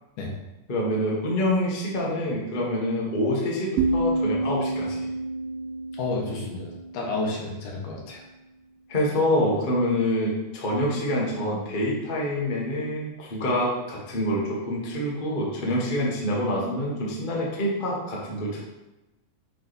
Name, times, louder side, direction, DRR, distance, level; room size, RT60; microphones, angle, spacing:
voice 1, 0.7-5.1 8.9-18.6, left 1 dB, 65° left, -4 dB, 0.5 m, -26 dB
sound 1, 3.8-7.7, right 2 dB, 90° right, 1.4 m, -29 dB
voice 2, 6.0-6.7 6.9-8.2, left 3 dB, 85° left, -2 dB, 2.8 m, -30 dB
8.7 x 3.4 x 4.1 m, 1.0 s
omnidirectional pair, 3.5 m